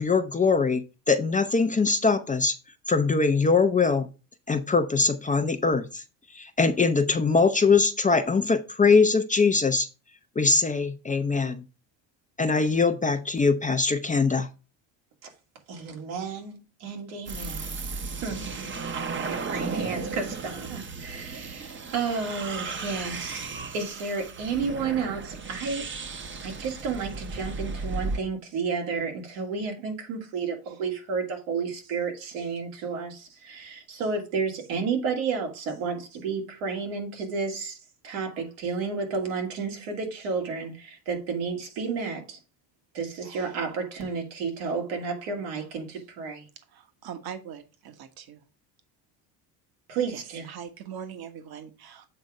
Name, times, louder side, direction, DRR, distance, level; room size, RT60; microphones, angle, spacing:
voice 1, 0.0-2.5 2.9-4.1 4.5-6.0 6.3-9.9 10.4-11.6 12.4-14.5, left 4 dB, 15° left, 0.6 m, -22 dB
voice 2, 15.7-17.7 18.2-18.5 18.9-23.4 23.7-25.9 26.4-37.8 38.0-42.4 42.9-46.4 49.9-50.5, right 5 dB, 80° right, 2.5 m, -31 dB
sound 1, 17.3-28.2, right 4 dB, 25° right, 0.9 m, -35 dB
voice 3, 46.7-48.4 50.1-50.2 50.5-52.0, right 8 dB, 50° right, 1.4 m, -41 dB
7.8 x 3.6 x 5.3 m
supercardioid pair, 100°, 47 cm